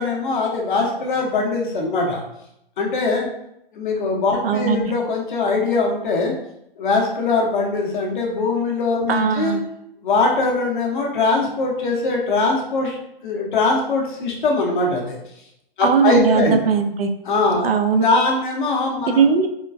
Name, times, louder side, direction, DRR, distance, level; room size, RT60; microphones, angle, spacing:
voice 1, 0.0-2.2 2.8-3.3 3.7-6.3 6.8-9.6 10.0-13.0 13.2-15.1 15.8-16.6 17.2-17.7 18.0-19.2, left 3 dB, 55° left, 0 dB, 0.9 m, -21 dB
voice 2, 4.4-4.8 9.1-9.6 15.8-17.1 17.6-18.1 19.1-19.5, right 6 dB, 75° right, 8 dB, 0.5 m, -18 dB
3.6 x 2.2 x 2.5 m, 0.79 s
hypercardioid pair, 135°, 29 cm